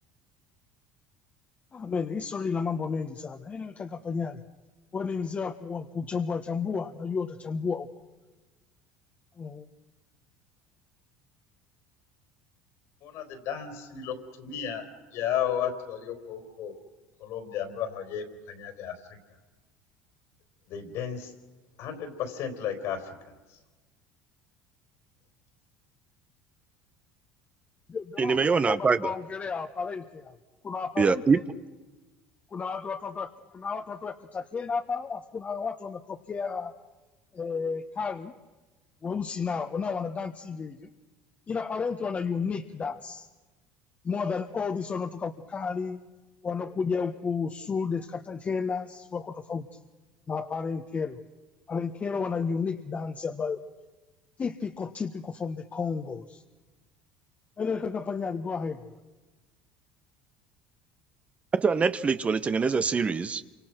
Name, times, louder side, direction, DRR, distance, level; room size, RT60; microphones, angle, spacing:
voice 1, 1.7-4.4 4.9-7.9 9.4-9.7 27.9-30.3 30.6-31.4 32.5-36.7 37.3-38.3 39.0-40.9 41.5-43.3 44.0-46.0 46.4-49.7 50.3-51.2 51.7-53.6 54.4-56.4 57.6-58.8, left 5 dB, 30° left, 4 dB, 1.4 m, -32 dB
voice 2, 13.0-16.8 17.2-19.2 20.7-21.3 21.8-23.2 23.5-23.6, left 9 dB, 65° left, 7 dB, 4.1 m, -34 dB
voice 3, 28.2-29.1 31.0-31.4 61.5-63.5, right 5 dB, 25° right, 13 dB, 1.0 m, -24 dB
28.0 x 25.5 x 6.1 m, 1.2 s
supercardioid pair, 90°, 5 cm